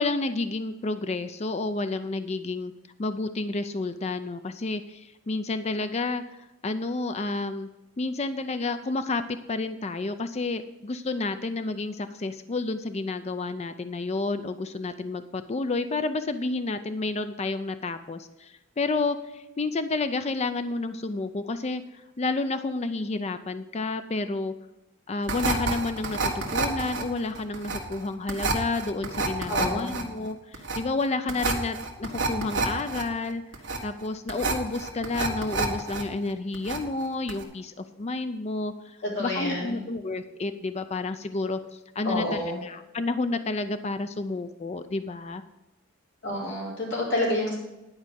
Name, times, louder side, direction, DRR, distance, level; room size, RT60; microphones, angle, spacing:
voice 1, 0.0-2.7 3.0-7.7 8.0-21.8 22.2-24.5 25.1-33.4 33.8-45.4, left 3 dB, 30° left, 10 dB, 0.4 m, -30 dB
sound 1, 25.3-36.0 36.3-37.0 37.3-37.4, right 3 dB, 60° right, 1.5 m, -29 dB
voice 2, 29.5-30.0 39.0-39.8 42.0-42.6 46.2-47.6, left 1 dB, 55° left, -4 dB, 4.1 m, -28 dB
10.5 x 4.9 x 7.4 m, 0.98 s
head